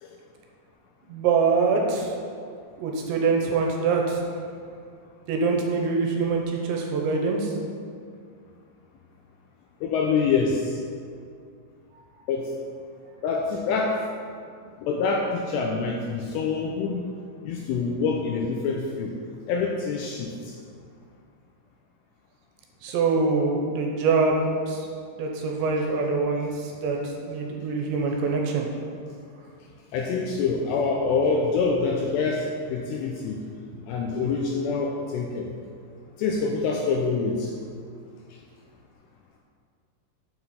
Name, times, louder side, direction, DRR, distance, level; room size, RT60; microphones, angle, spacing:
voice 1, 1.1-2.1 2.4-4.2 5.3-7.5 22.8-24.9 25.2-28.7, right 4 dB, 80° right, 1 dB, 2.9 m, -24 dB
voice 2, 9.8-10.8 12.3-12.5 13.2-14.0 14.8-17.1 17.4-19.1 19.5-20.5 29.9-33.4 33.9-35.5 36.2-37.5, left 4 dB, 80° left, 0 dB, 2.5 m, -26 dB
7.9 x 5.8 x 6.8 m, 2.3 s
omnidirectional pair, 5.5 m